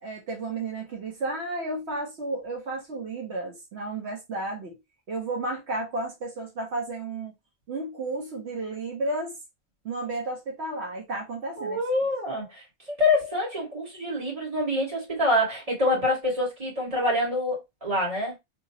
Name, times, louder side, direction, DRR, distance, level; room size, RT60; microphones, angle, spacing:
voice 1, 0.0-4.8 5.1-7.3 7.7-9.4 9.8-11.8 15.9-16.0, right 2 dB, 80° right, 1.4 m, -32 dB
voice 2, 11.6-18.3, left 1 dB, 35° right, 2.0 m, -26 dB
3.4 x 3.0 x 2.8 m
omnidirectional pair, 1.1 m